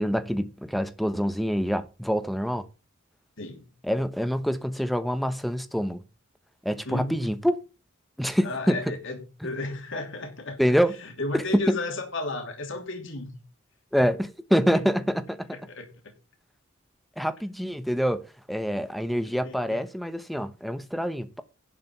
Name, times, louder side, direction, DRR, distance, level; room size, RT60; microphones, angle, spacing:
voice 1, 0.0-2.7 3.8-6.0 6.6-7.6 8.2-9.0 10.6-10.9 11.3-11.8 13.9-15.5 17.2-21.4, equal, ahead, 1.1 m, -26 dB
voice 2, 3.4-3.7 6.8-7.3 8.4-10.6 11.0-13.4 15.7-15.9 19.4-19.8, left 2 dB, 65° left, 2.7 m, -33 dB
11.0 x 5.1 x 7.9 m
head